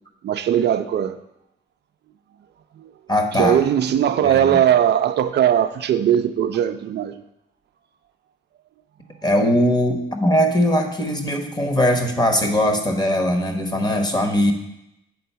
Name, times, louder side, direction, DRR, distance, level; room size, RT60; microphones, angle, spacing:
voice 1, 0.2-1.2 2.8-2.9 3.3-7.2, right 10 dB, 60° right, 0.4 m, -19 dB
voice 2, 3.1-3.6 4.2-4.6 9.2-14.5, equal, 20° left, 1.1 m, -20 dB
8.5 x 3.9 x 5.6 m
cardioid pair, 90°, 20 cm